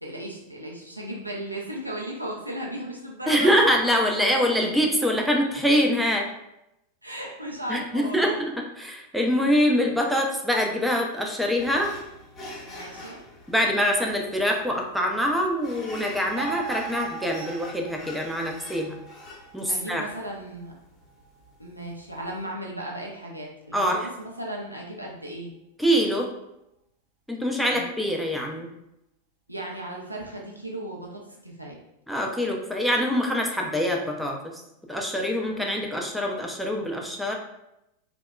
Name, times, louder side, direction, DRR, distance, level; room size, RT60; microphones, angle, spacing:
voice 1, 0.0-3.6 7.0-8.4 12.7-13.2 19.7-20.7 21.6-25.6 27.7-27.8 29.5-31.8, right 1 dB, 85° right, -2 dB, 0.4 m, -36 dB
voice 2, 3.3-6.3 7.7-11.9 13.5-19.0 19.5-20.1 23.7-24.1 25.8-26.3 27.3-28.7 32.1-34.6 34.9-37.3, equal, ahead, 0 dB, 0.4 m, -24 dB
sound 1, 11.6-22.4, left 1 dB, 30° left, 0.8 m, -45 dB
sound 2, 16.4-23.3 23.7-23.8, right 7 dB, 50° right, 0.7 m, -41 dB
2.7 x 2.1 x 2.3 m, 0.85 s
figure-of-eight pair, 90°, 0 cm